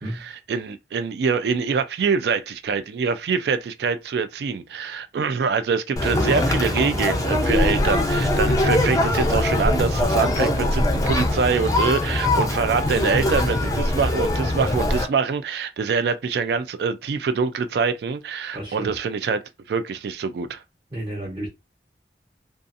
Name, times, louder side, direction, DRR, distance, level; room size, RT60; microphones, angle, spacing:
voice 1, 0.2-19.4 19.7-20.6, right 5 dB, 70° right, 0.3 m, -25 dB
Conversation, 6.0-15.0, left 1 dB, 20° left, 0.4 m, -22 dB
voice 2, 18.5-19.0 20.9-21.5, right 1 dB, 25° right, 0.8 m, -31 dB
2.6 x 2.4 x 2.5 m
head